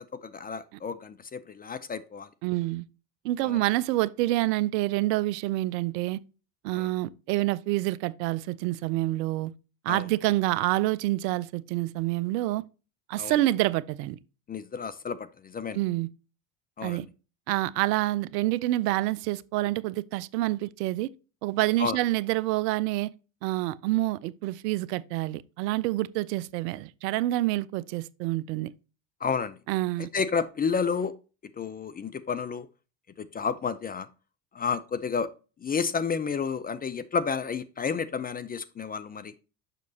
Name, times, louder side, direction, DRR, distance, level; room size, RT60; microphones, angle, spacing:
voice 1, 0.0-2.3 3.4-3.6 6.7-6.9 9.9-10.0 13.2-13.3 14.5-15.8 16.8-17.1 21.8-22.0 29.2-29.6 30.1-31.1 31.6-32.7 33.2-34.1 34.6-35.3 35.6-39.3, left 5 dB, 20° left, 0.4 m, -31 dB
voice 2, 2.4-2.8 3.2-6.2 6.6-9.5 9.8-12.6 13.1-14.2 15.7-16.1 16.8-17.1 17.5-21.1 21.4-23.1 23.4-28.7 29.7-30.1, right 17 dB, 80° right, 0.6 m, -27 dB
6.8 x 6.0 x 2.7 m
hypercardioid pair, 75°, 49 cm